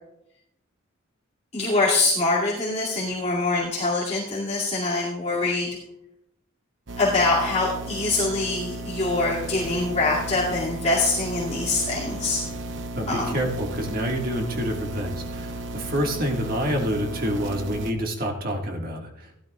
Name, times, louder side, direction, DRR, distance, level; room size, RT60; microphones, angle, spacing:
voice 1, 1.5-5.8 7.0-12.4 13.1-13.4, left 3 dB, 30° left, -7 dB, 2.5 m, -24 dB
sound 1, 6.9-17.9, right 2 dB, 60° right, 0.8 m, -34 dB
voice 2, 13.0-19.3, equal, 45° right, 1 dB, 1.8 m, -28 dB
17.0 x 12.0 x 2.4 m, 0.83 s
head